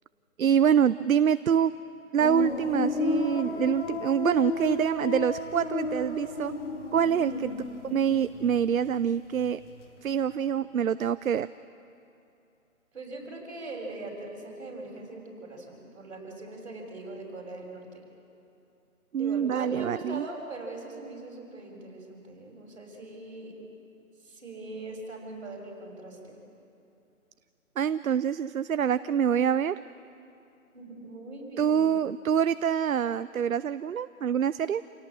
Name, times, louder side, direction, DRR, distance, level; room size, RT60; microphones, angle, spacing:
voice 1, 0.4-1.7 2.1-6.5 6.9-7.5 7.8-9.6 10.0-11.5 19.1-20.3 27.8-29.8 31.6-34.8, right 8 dB, 70° right, 15 dB, 0.7 m, -25 dB
sound 1, 2.2-9.1 9.3-10.1, left 3 dB, 55° left, 2.9 m, -33 dB
voice 2, 12.9-17.9 19.2-23.6 24.2-26.4 30.7-31.8, right 2 dB, 50° right, 1 dB, 6.7 m, -41 dB
28.5 x 17.5 x 8.7 m, 2.7 s
hypercardioid pair, 175°, 42 cm